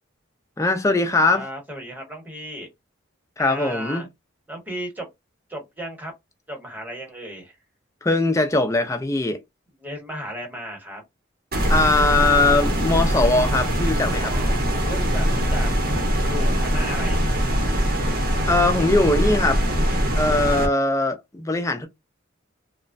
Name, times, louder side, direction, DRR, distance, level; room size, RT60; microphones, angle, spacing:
voice 1, 0.6-1.5 3.4-4.0 8.0-9.4 11.7-14.3 18.4-19.6 20.1-21.9, left 2 dB, 15° left, 0.4 m, -20 dB
voice 2, 1.3-2.7 3.4-4.1 4.5-5.1 5.5-6.1 6.5-7.6 9.8-11.0 14.1-14.6 14.8-15.7 16.2-17.3, equal, 10° right, 1.0 m, -34 dB
sound 1, 11.5-20.7, equal, 45° right, 0.7 m, -22 dB
3.0 x 2.1 x 2.5 m
head